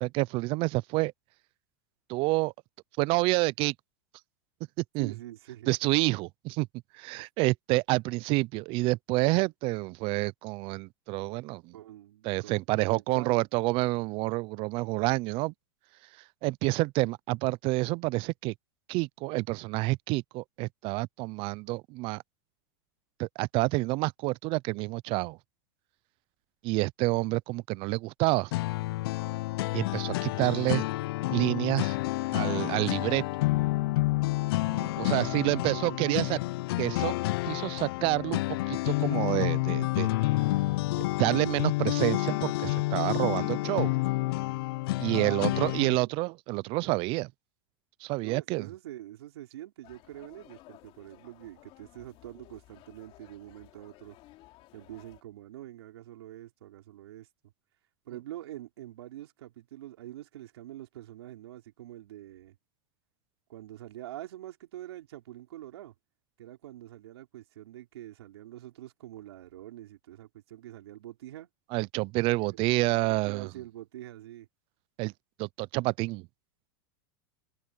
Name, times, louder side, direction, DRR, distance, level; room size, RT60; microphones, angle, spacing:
voice 1, 0.0-1.1 2.1-2.5 3.0-3.7 4.9-5.1 5.7-6.7 6.9-11.7 12.2-15.5 16.4-18.5 18.9-22.2 23.2-25.4 26.6-28.5 29.7-30.8 31.3-32.0 32.3-33.2 35.0-36.4 36.8-37.1 37.4-40.1 41.2-43.9 45.0-47.3 48.0-48.7 71.7-73.5 75.0-75.1 75.4-76.3, right 23 dB, 45° right, 0.5 m, -28 dB
voice 2, 5.0-5.7 7.2-7.3 11.7-13.4 34.6-36.4 45.1-46.1 48.2-54.2 54.7-57.3 58.1-62.6 63.5-65.9 66.4-71.5 72.4-74.5, right 13 dB, 80° right, 4.3 m, -45 dB
sound 1, 28.5-46.0, left 19 dB, 65° left, 0.6 m, -29 dB
sound 2, 49.8-55.2, left 17 dB, 45° left, 3.1 m, -56 dB
supercardioid pair, 130°, 13 cm